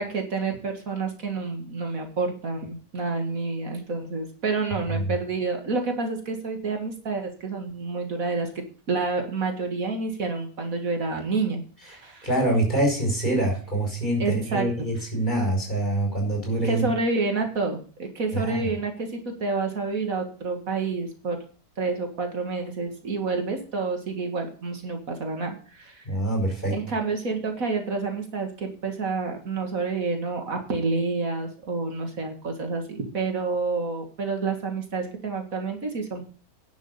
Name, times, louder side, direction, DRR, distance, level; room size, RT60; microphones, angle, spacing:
voice 1, 0.0-8.5 8.9-12.3 14.2-14.7 16.6-21.4 21.8-26.1 26.7-36.3, right 4 dB, 65° right, 4 dB, 2.3 m, -29 dB
voice 2, 12.2-16.9 18.3-18.6 26.1-26.7, right 1 dB, 30° left, 0 dB, 5.4 m, -25 dB
11.0 x 6.4 x 6.7 m, 0.40 s
omnidirectional pair, 1.6 m